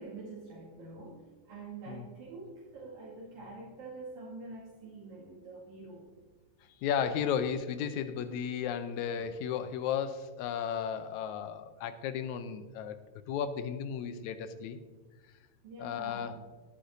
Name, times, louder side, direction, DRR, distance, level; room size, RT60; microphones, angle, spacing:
voice 1, 0.0-6.1 15.6-16.4, right 3 dB, 85° right, -7 dB, 3.5 m, -46 dB
voice 2, 6.8-13.0 13.3-14.8 15.8-16.4, left 8 dB, 85° left, 11 dB, 2.0 m, -34 dB
17.5 x 8.7 x 2.6 m, 1.4 s
omnidirectional pair, 3.3 m